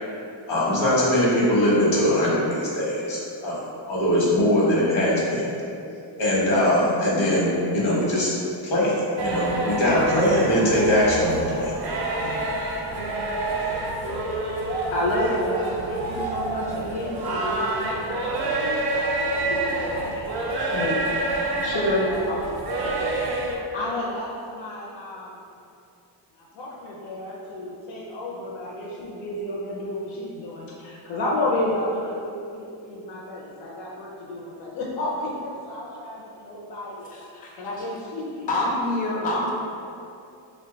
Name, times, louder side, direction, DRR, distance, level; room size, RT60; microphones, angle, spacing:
voice 1, 0.5-5.5 6.2-8.3 8.6-8.9 9.2-11.7 12.2-12.3, left 1 dB, 85° left, -6 dB, 1.1 m, -21 dB
sound 1, 9.2-23.6, right 2 dB, 55° right, 0.5 m, -27 dB
voice 2, 14.9-21.0 21.6-25.4 26.4-38.5, left 1 dB, 65° left, -5 dB, 0.6 m, -31 dB
voice 3, 37.1-37.7 38.5-39.5, left 2 dB, 20° left, -3 dB, 0.3 m, -26 dB
2.5 x 2.2 x 3.8 m, 2.6 s
cardioid pair, 120°, 47 cm